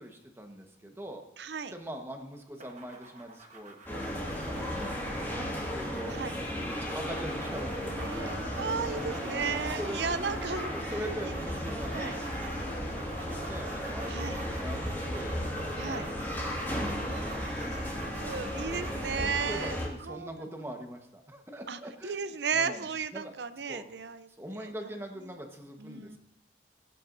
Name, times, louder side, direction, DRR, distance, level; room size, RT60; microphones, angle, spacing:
voice 1, 0.0-1.2 1.7-4.7 5.1-6.1 6.6-8.3 8.9-9.4 9.8-10.3 10.7-15.6 15.8-17.1 17.4-17.8 19.1-22.2 22.5-23.3 23.7-23.9 24.4-26.2, right 1 dB, 15° right, 3 dB, 1.2 m, -43 dB
voice 2, 1.4-1.7 4.6-4.8 6.1-6.4 7.7-11.0 11.2-11.3 11.9-12.1 14.1-14.4 15.8-16.1 17.0-19.7 20.0-20.4 21.7-24.3 24.5-24.7 25.8-26.2, right 5 dB, 70° right, 12 dB, 0.6 m, -35 dB
sound 1, 2.6-19.1, right 2 dB, 40° right, 1.4 m, -47 dB
sound 2, 3.9-19.9, equal, 10° left, 1.9 m, -35 dB
21.5 x 8.5 x 2.6 m, 0.82 s
head